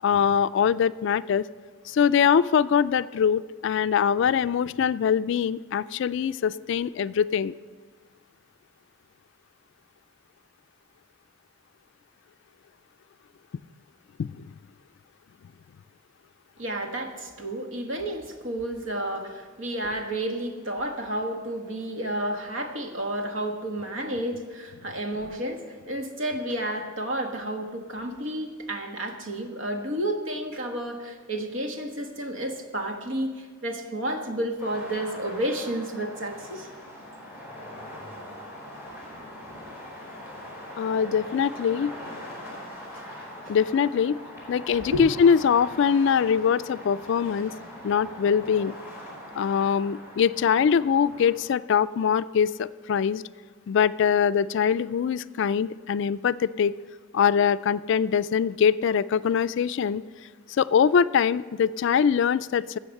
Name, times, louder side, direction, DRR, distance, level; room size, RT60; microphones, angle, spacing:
voice 1, 0.0-1.5 1.9-7.5 14.2-14.5 40.8-41.9 43.5-44.2 44.5-47.5 47.8-48.7 49.3-53.2 53.7-56.7 57.1-60.0 60.6-62.8, left 7 dB, 65° left, 15 dB, 0.3 m, -23 dB
voice 2, 16.6-36.7 42.9-43.0 43.4-43.5 44.9-45.0, right 1 dB, 70° right, 4 dB, 1.4 m, -31 dB
sound 1, 34.6-51.3, left 1 dB, 15° right, 3.9 m, -42 dB
13.5 x 7.7 x 6.5 m, 1.5 s
head